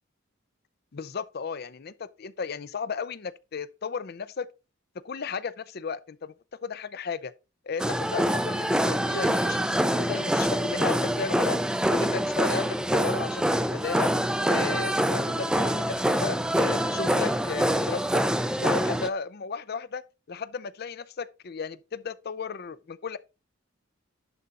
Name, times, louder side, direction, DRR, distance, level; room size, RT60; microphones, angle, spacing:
voice 1, 0.9-4.5 5.0-6.3 6.6-7.3 7.7-11.6 11.9-14.1 14.4-18.2 18.6-20.0 20.3-23.2, left 5 dB, 55° left, 0.5 m, -34 dB
sound 1, 7.8-19.1, equal, 5° right, 0.4 m, -25 dB
11.0 x 3.7 x 4.1 m
head